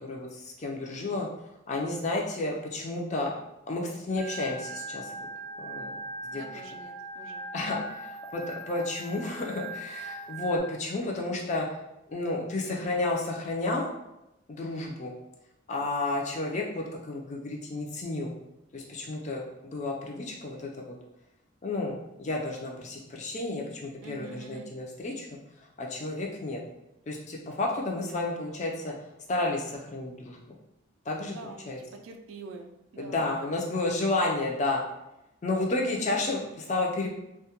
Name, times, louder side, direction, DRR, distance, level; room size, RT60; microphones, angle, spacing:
voice 1, 0.0-1.3 1.7-3.3 3.7-5.3 5.6-6.0 6.3-6.4 7.5-11.7 12.1-13.9 14.5-15.1 15.7-18.3 18.7-19.4 19.7-20.9 21.6-25.3 25.8-26.6 27.1-28.9 29.3-30.4 31.1-31.4 31.7-31.8 33.0-34.8 35.4-37.1, left 2 dB, 35° left, -1 dB, 0.4 m, -31 dB
Organ, 4.2-10.6, right 2 dB, 50° left, 0.8 m, -40 dB
voice 2, 6.3-7.5 24.0-24.7 31.2-33.2, right 3 dB, 75° right, 4 dB, 0.3 m, -45 dB
2.2 x 2.1 x 2.8 m, 0.91 s
head